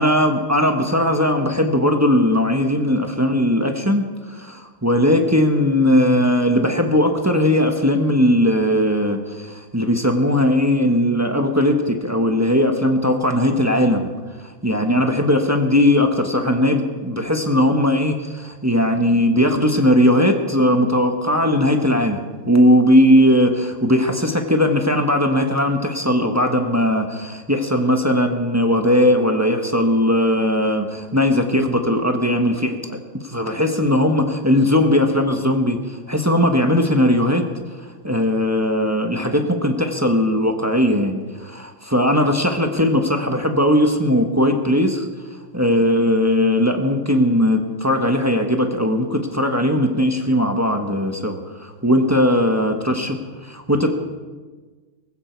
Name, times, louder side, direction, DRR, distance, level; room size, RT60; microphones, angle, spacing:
voice 1, 0.0-14.1 14.4-22.2 22.5-53.9, left 1 dB, 10° right, 4 dB, 0.9 m, -18 dB
19.5 x 16.0 x 4.6 m, 1.4 s
omnidirectional pair, 2.2 m